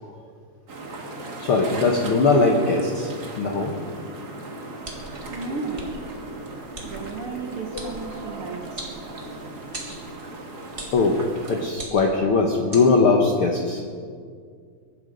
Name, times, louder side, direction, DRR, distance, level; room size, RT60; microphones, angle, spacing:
sound 1, 0.7-11.7, right 2 dB, 35° right, 1.8 m, -37 dB
voice 1, 1.4-3.1 3.4-3.8 10.9-11.2 11.5-13.8, left 3 dB, 65° left, 1 dB, 1.4 m, -20 dB
sound 2, 4.8-5.2 5.7-5.9 6.7-6.9 7.7-7.9 8.8-9.4 9.7-10.0 10.8-11.0 11.7-12.2 12.7-12.9, right 2 dB, 20° right, 2.0 m, -37 dB
voice 2, 5.3-6.0 6.8-8.9, right 4 dB, 60° right, 1 dB, 1.6 m, -34 dB
23.0 x 11.5 x 5.1 m, 2.1 s
omnidirectional pair, 4.0 m